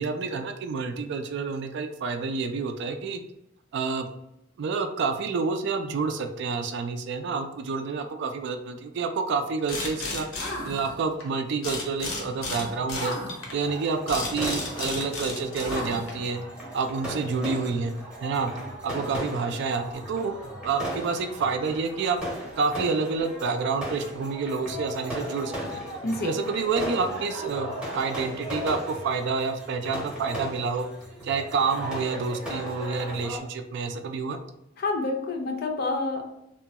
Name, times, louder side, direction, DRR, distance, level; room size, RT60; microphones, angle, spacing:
voice 1, 0.0-3.2 3.7-4.1 4.6-10.3 10.6-13.2 13.5-16.4 16.7-18.5 18.8-22.2 22.6-25.8 26.2-30.9 31.2-34.4, right 4 dB, 60° right, 7 dB, 0.3 m, -28 dB
sound 1, 9.7-11.2 11.6-16.3, left 2 dB, 85° left, 0.8 m, -33 dB
sound 2, 13.6-33.4, equal, 5° right, 0.7 m, -37 dB
voice 2, 34.8-36.3, left 2 dB, 50° left, 3 dB, 0.5 m, -28 dB
2.9 x 2.2 x 2.7 m, 0.86 s
head